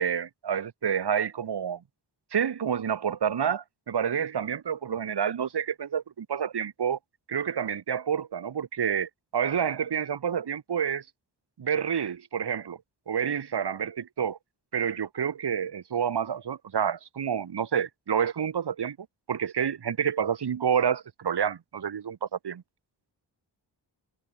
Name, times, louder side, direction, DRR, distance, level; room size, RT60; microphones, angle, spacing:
voice 1, 0.0-1.8 2.3-7.0 7.3-11.0 11.6-12.8 13.1-14.4 14.7-19.0 19.3-22.6, right 8 dB, 65° right, 2.7 m, -28 dB
wide cardioid pair, 125°, 43 cm